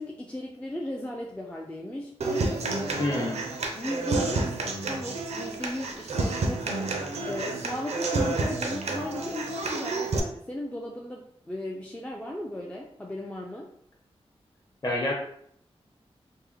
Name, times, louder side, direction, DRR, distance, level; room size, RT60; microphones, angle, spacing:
voice 1, 0.0-3.2 3.7-4.5 4.9-6.9 7.3-13.7, left 1 dB, 10° left, -2 dB, 0.3 m, -36 dB
Human voice / Acoustic guitar, 2.2-10.2, right 3 dB, 85° right, 0.5 m, -30 dB
voice 2, 3.0-3.4 14.8-15.1, left 1 dB, 40° left, -2 dB, 0.9 m, -27 dB
3.4 x 2.1 x 3.1 m, 0.68 s
wide cardioid pair, 125°, 11 cm